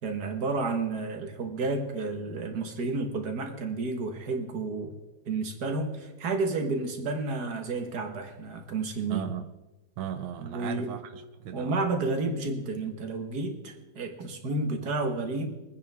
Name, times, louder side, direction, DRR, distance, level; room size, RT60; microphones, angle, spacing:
voice 1, 0.0-4.9 5.3-9.3 10.4-10.9 11.5-15.5, right 3 dB, 55° right, 5 dB, 2.0 m, -31 dB
voice 2, 9.1-9.5 10.0-11.8, right 9 dB, 85° right, 8 dB, 1.6 m, -37 dB
23.5 x 9.5 x 3.6 m, 1.1 s
omnidirectional pair, 2.2 m